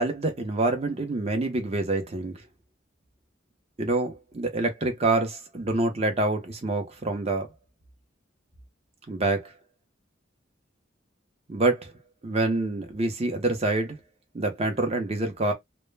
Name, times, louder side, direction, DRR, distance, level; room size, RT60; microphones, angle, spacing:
voice 1, 0.0-2.3 3.8-7.5 9.1-9.5 11.5-11.9 12.2-14.0 14.3-15.5, right 2 dB, 35° right, 0.6 m, -26 dB
2.1 x 2.1 x 3.1 m
head